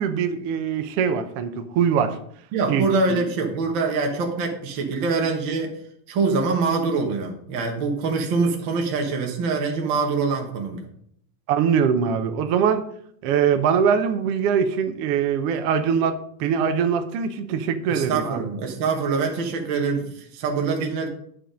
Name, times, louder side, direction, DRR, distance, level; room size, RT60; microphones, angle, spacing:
voice 1, 0.0-2.2 2.7-3.2 11.5-12.8 13.2-18.4, right 7 dB, 80° right, 8 dB, 1.3 m, -22 dB
voice 2, 2.5-5.7 6.1-10.8 17.9-21.1, right 4 dB, 60° right, 1 dB, 1.3 m, -24 dB
9.3 x 5.9 x 5.1 m, 0.66 s
omnidirectional pair, 3.8 m